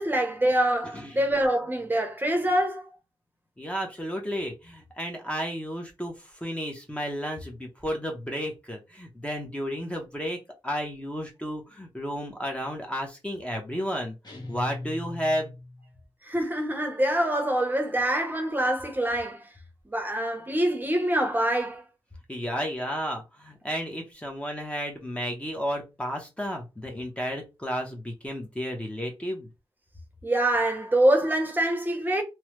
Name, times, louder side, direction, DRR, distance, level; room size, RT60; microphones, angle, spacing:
voice 1, 0.0-2.9 16.2-19.5 19.9-21.8 30.2-32.2, right 1 dB, 20° right, 0.8 m, -25 dB
voice 2, 3.6-14.1 14.5-15.5 22.3-29.5, equal, 10° left, 0.8 m, -32 dB
sound 1, 14.2-16.0, left 2 dB, 45° left, 1.1 m, -39 dB
3.1 x 2.0 x 3.0 m
wide cardioid pair, 85°, 10 cm